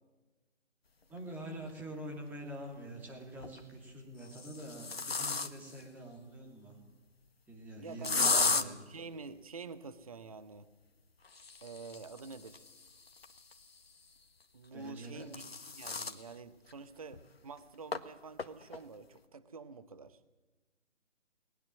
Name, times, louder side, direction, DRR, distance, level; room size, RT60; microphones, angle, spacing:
voice 1, 1.1-6.8 7.5-8.9 14.7-15.3, right 1 dB, 5° right, 0 dB, 2.2 m, -45 dB
sound 1, 1.7-1.8 3.2-3.6 4.2-5.8 8.0-8.6 11.2-13.9 14.9-16.2 16.7-16.8 17.1-17.2 17.9-18.0 18.4-18.8, left 4 dB, 55° left, 1.5 m, -35 dB
voice 2, 7.8-10.7 11.6-12.6 14.5-15.4 15.7-20.2, right 4 dB, 30° right, 14 dB, 0.8 m, -47 dB
19.5 x 19.5 x 7.4 m, 1.2 s
figure-of-eight pair, 150°, 36 cm